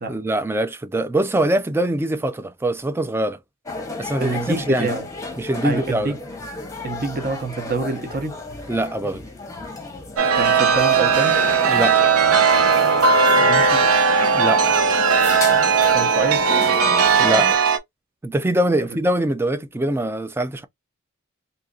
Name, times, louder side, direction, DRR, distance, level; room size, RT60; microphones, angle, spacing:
voice 1, 0.1-3.4 4.0-4.9 5.4-6.2 8.7-9.3 11.6-12.0 14.3-14.6 17.2-17.5 18.2-20.6, right 1 dB, 10° right, 0.3 m, -23 dB
sound 1, 3.7-17.6, left 2 dB, 15° left, 0.8 m, -33 dB
voice 2, 4.2-5.1 5.6-6.2 6.8-8.4 10.3-11.4 13.3-13.9 15.9-16.6 18.9-19.0, right 3 dB, 45° right, 0.9 m, -27 dB
Chime, 10.2-17.8, right 5 dB, 80° right, 0.6 m, -17 dB
2.7 x 2.5 x 3.7 m
head